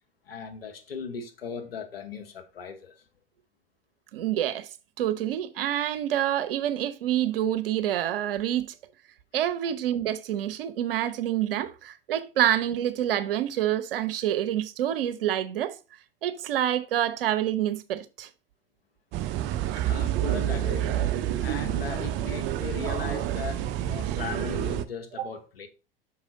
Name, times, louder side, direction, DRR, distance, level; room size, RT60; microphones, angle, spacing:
voice 1, 0.3-3.0 19.7-25.7, left 6 dB, 85° left, 1.0 m, -38 dB
voice 2, 4.1-4.7 5.0-8.7 9.3-15.8 16.2-18.3 25.2-25.3, right 11 dB, 70° right, 0.8 m, -27 dB
sound 1, 19.1-24.8, right 12 dB, 40° right, 0.5 m, -28 dB
5.8 x 4.9 x 3.8 m
hypercardioid pair, 90°, 29 cm